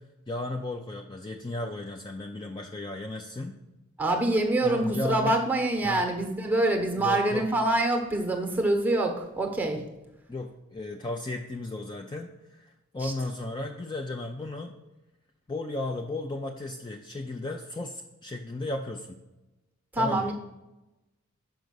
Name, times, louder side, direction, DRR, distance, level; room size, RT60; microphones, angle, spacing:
voice 1, 0.3-3.6 4.6-5.4 5.8-6.1 7.0-7.5 10.3-14.7 15.5-19.2 20.0-20.3, left 2 dB, 20° left, 4 dB, 0.4 m, -35 dB
voice 2, 4.0-9.8 13.0-13.1 19.9-20.3, right 2 dB, 10° right, 3 dB, 0.9 m, -25 dB
5.9 x 5.1 x 6.3 m, 1.0 s
head